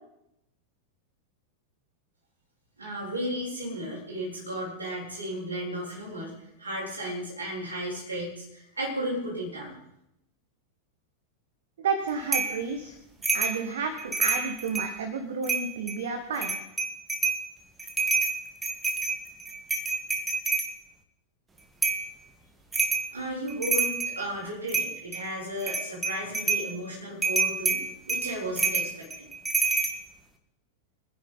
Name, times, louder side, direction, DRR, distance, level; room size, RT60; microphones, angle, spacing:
voice 1, 2.8-9.7 23.1-27.8 28.1-29.3 29.7-29.9, equal, 75° right, -5 dB, 7.5 m, -34 dB
voice 2, 11.8-12.9 13.3-16.6, right 5 dB, 60° right, 6 dB, 1.6 m, -31 dB
sound 1, 12.3-12.6 13.2-13.6 14.0-14.9 15.4-16.0 16.4-17.4 17.8-20.7 21.8-22.1 22.7-23.1 23.5-24.2 24.7-25.2 25.6-26.7 27.2-30.0, right 4 dB, 15° right, 1.8 m, -27 dB
24.5 x 10.5 x 4.2 m, 0.83 s
figure-of-eight pair, 90°, 0 cm